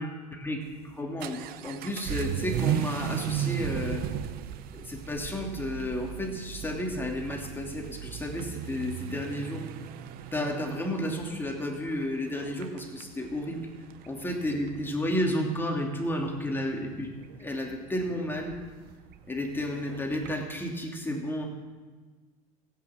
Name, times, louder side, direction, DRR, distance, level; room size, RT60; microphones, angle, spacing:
voice 1, 0.0-4.0 4.7-9.7 10.3-13.7 14.1-17.1 17.3-18.6 19.3-21.5, left 1 dB, 10° left, 0 dB, 2.7 m, -32 dB
Vehicle / Accelerating revving vroom, 0.6-20.4, right 10 dB, 55° right, 0.8 m, -37 dB
15.5 x 9.1 x 7.3 m, 1.4 s
hypercardioid pair, 75°, 18 cm